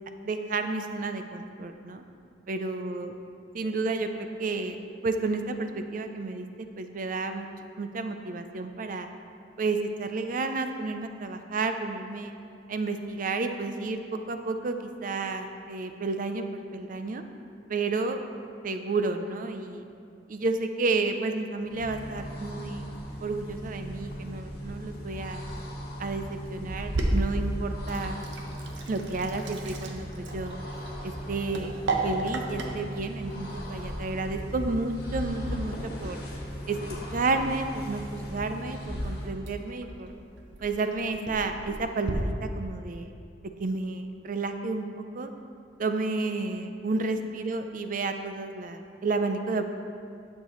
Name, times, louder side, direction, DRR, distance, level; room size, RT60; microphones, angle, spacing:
voice 1, 0.2-2.0 2.5-3.1 3.5-4.8 5.0-7.5 7.8-9.1 9.6-12.3 12.7-16.4 16.7-17.2 17.7-18.2 18.6-19.8 20.3-22.9 23.2-25.4 26.0-28.3 28.9-30.6 31.0-31.8 32.0-36.2 36.7-36.8 37.1-40.2 40.6-43.1 43.6-45.3 45.8-49.7, right 3 dB, 50° right, 7 dB, 0.5 m, -31 dB
sound 1, 21.6-39.4, equal, 60° left, 1.4 m, -38 dB
Sink (filling or washing), 26.7-42.1, right 2 dB, 80° right, 0.8 m, -36 dB
10.5 x 6.6 x 3.1 m, 2.5 s
head